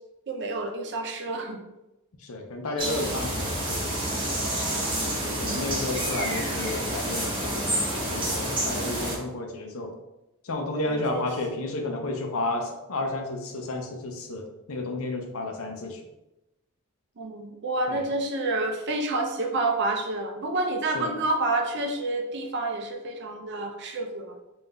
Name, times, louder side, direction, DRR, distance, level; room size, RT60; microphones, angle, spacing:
voice 1, 0.3-1.6 4.8-5.6 10.8-11.3 17.2-24.4, right 2 dB, 55° right, 3 dB, 0.6 m, -29 dB
voice 2, 2.2-4.0 5.4-7.8 8.1-9.9 10.4-16.0 17.9-18.0 20.9-21.1, left 2 dB, 70° left, 4 dB, 0.6 m, -32 dB
sound 1, 2.8-9.2, right 1 dB, 25° right, 1.2 m, -28 dB
3.7 x 2.6 x 3.3 m, 0.95 s
head